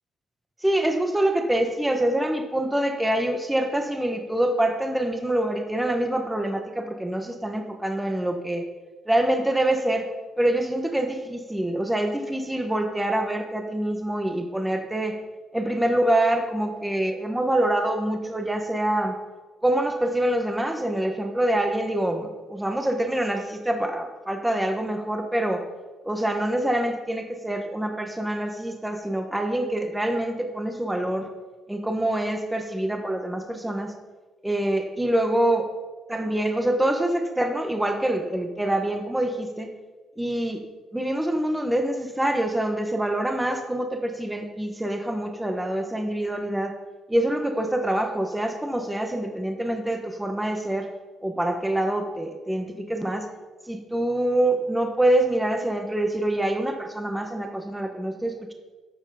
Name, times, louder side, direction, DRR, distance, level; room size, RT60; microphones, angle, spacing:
voice 1, 0.6-8.6 9.1-10.1 10.4-15.2 15.5-19.2 19.6-25.6 26.0-31.3 31.7-33.9 34.4-35.7 36.1-39.7 40.2-40.6 40.9-46.7 47.1-50.9 51.2-53.3 53.7-58.5, right 1 dB, 10° right, 5 dB, 1.3 m, -25 dB
12.0 x 6.5 x 5.0 m, 1.3 s
cardioid pair, 90°, 0 cm